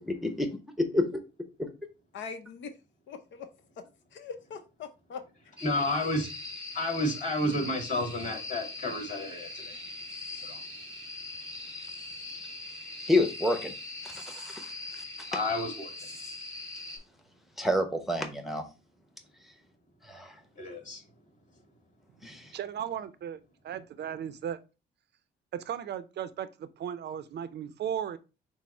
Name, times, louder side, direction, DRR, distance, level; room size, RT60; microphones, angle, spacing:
voice 1, 0.1-0.5 0.8-1.2 13.1-13.7 14.0-15.0 17.6-18.6 20.0-20.3 22.2-22.5, left 1 dB, ahead, 0.8 m, -29 dB
voice 2, 2.1-2.7 3.1-3.5 4.1-5.2, left 6 dB, 70° left, 0.6 m, -41 dB
voice 3, 5.6-6.3 6.7-9.8 10.4-10.6 15.3-15.9 20.6-21.0, left 1 dB, 40° left, 2.1 m, -31 dB
sound 1, 5.6-17.0, left 2 dB, 15° left, 2.6 m, -41 dB
voice 4, 22.5-24.6 25.5-28.2, right 9 dB, 60° right, 0.5 m, -36 dB
6.1 x 2.0 x 4.3 m
cardioid pair, 90°, 20 cm